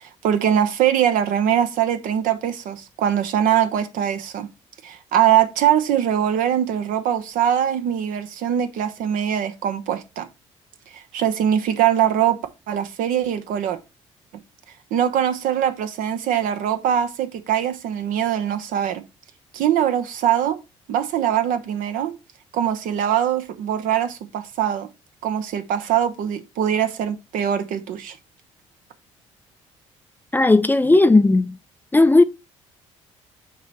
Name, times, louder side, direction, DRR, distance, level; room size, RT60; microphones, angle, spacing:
voice 1, 0.0-4.5 4.8-10.3 10.9-12.4 12.7-13.8 14.9-19.0 19.5-20.6 20.9-22.2 22.5-24.9 25.2-28.2, right 10 dB, 60° right, 0.9 m, -22 dB
voice 2, 30.3-31.6 31.9-32.2, left 2 dB, 10° left, 0.5 m, -15 dB
9.1 x 3.1 x 4.1 m
figure-of-eight pair, 50°, 16 cm